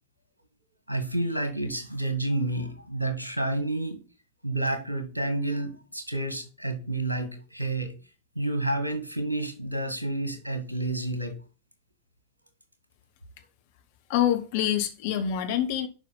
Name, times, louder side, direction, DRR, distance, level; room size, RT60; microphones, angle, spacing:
voice 1, 0.9-4.0 4.4-7.9 8.3-11.3, right 2 dB, 80° right, 1.7 m, -29 dB
voice 2, 14.1-15.9, left 10 dB, 50° left, 1.5 m, -26 dB
11.0 x 5.0 x 4.1 m
figure-of-eight pair, 90°, 0 cm